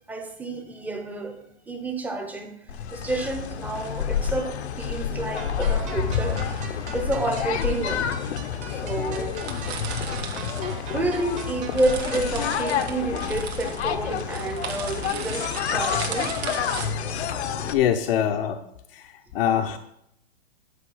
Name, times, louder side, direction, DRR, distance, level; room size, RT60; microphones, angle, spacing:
voice 1, 0.1-2.5 2.9-6.4 6.9-8.1 8.7-9.4 10.9-16.3, right 2 dB, 5° right, 4 dB, 0.7 m, -29 dB
sound 1, 2.7-17.7, left 8 dB, 85° left, 0.9 m, -29 dB
sound 2, 4.0-4.2 6.1-6.8 7.6-7.7 8.4-8.5 8.8-8.9 9.0-11.3 11.6-16.9, right 7 dB, 80° right, 1.8 m, -37 dB
sound 3, 5.4-12.4, right 5 dB, 20° right, 1.0 m, -42 dB
voice 2, 17.7-18.6 18.9-19.1 19.3-19.8, left 10 dB, 60° left, 6 dB, 0.7 m, -23 dB
10.0 x 5.2 x 5.5 m, 0.76 s
hypercardioid pair, 150°, 32 cm